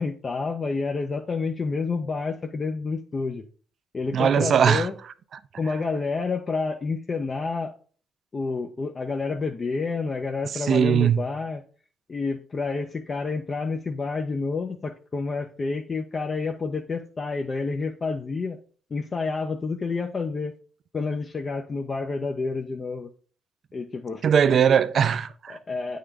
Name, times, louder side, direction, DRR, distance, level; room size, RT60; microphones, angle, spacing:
voice 1, 0.0-3.4 3.9-4.9 5.6-7.7 8.3-11.6 12.1-18.6 18.9-20.5 20.9-23.1 23.7-24.2 25.5-26.0, left 4 dB, 35° left, 0.6 m, -29 dB
voice 2, 4.1-4.9 10.5-11.2 24.2-25.6, right 7 dB, 60° right, 0.4 m, -20 dB
8.5 x 3.7 x 3.4 m
cardioid pair, 90°, 0 cm